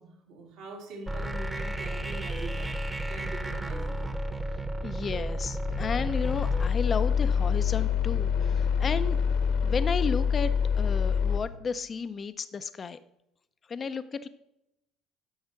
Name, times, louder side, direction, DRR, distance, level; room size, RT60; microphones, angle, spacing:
voice 1, 0.0-2.8 3.1-4.2, right 2 dB, 75° right, 0 dB, 2.8 m, -43 dB
sound 1, 1.1-6.7, right 1 dB, 10° right, 0.9 m, -33 dB
voice 2, 4.8-9.2 9.6-10.5 10.8-13.0 13.7-14.3, left 5 dB, 35° left, 12 dB, 0.5 m, -33 dB
sound 2, 5.7-11.4, left 7 dB, 80° left, 1.5 m, -26 dB
10.5 x 6.6 x 5.7 m, 0.84 s
supercardioid pair, 95°, 0 cm